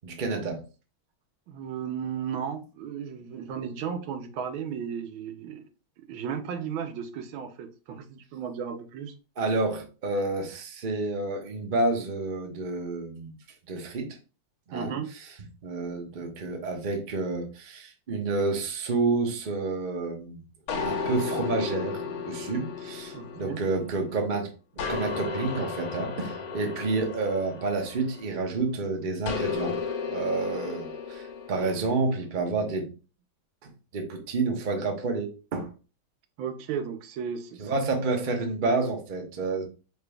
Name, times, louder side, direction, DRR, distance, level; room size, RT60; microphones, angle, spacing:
voice 1, 0.0-0.6 9.4-13.3 13.7-14.2 14.7-14.9 15.6-20.4 20.8-24.5 24.9-29.8 30.1-32.9 33.6-35.7 37.6-39.6, right 3 dB, 55° right, 3 dB, 0.5 m, -29 dB
voice 2, 1.5-5.7 6.1-9.1 14.7-15.1 23.1-23.6 36.4-37.7, right 7 dB, 80° right, 8 dB, 1.4 m, -35 dB
sound 1, 20.7-24.3 24.8-28.5 29.3-31.9, left 5 dB, 85° left, 1.8 m, -34 dB
5.0 x 4.0 x 2.2 m, 0.33 s
omnidirectional pair, 2.2 m